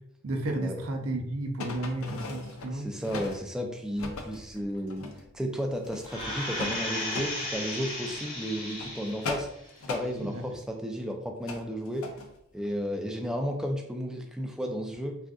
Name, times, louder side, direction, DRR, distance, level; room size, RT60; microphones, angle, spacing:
voice 1, 0.2-2.9 10.2-10.4, right 1 dB, 70° right, 3 dB, 0.6 m, -32 dB
sound 1, 1.6-3.5 4.0-5.3 5.7-7.4 7.9-8.2 8.6-10.1 11.5-12.3 12.6-12.7, left 3 dB, 70° left, 0.5 m, -39 dB
voice 2, 2.7-5.1 5.3-9.5 9.9-12.1 12.5-15.2, equal, 5° right, 2 dB, 0.3 m, -33 dB
sound 2, 6.1-9.5 9.9-10.0, left 1 dB, 25° left, 0.9 m, -35 dB
3.6 x 2.5 x 2.3 m, 0.76 s
head